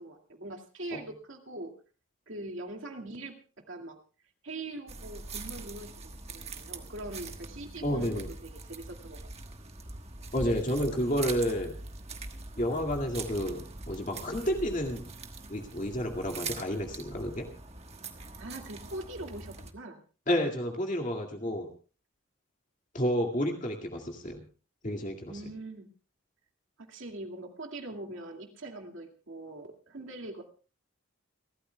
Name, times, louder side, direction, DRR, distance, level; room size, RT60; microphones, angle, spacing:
voice 1, 0.0-1.7 2.3-4.0 4.4-9.2 18.4-20.0 25.3-25.9 26.8-30.4, right 2 dB, 65° right, 3 dB, 2.2 m, -42 dB
sound 1, 4.9-19.7, right 3 dB, 30° right, 1.3 m, -43 dB
voice 2, 7.8-8.3 10.3-11.8 12.6-15.1 15.5-17.4 20.3-21.7 22.9-24.4 24.8-25.3, equal, 35° left, 2 dB, 2.1 m, -30 dB
29.5 x 13.0 x 2.3 m, 0.37 s
head